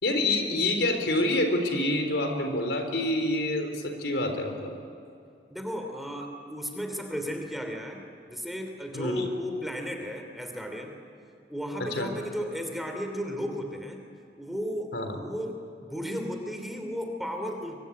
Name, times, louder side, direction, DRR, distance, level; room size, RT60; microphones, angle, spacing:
voice 1, 0.0-4.7 8.9-9.3 11.8-12.1 14.9-15.2, left 1 dB, 80° left, 5 dB, 3.9 m, -27 dB
voice 2, 5.5-8.0 8.3-10.9 11.5-14.0 14.4-17.8, equal, ahead, 4 dB, 3.0 m, -34 dB
24.5 x 23.5 x 9.5 m, 2.5 s
head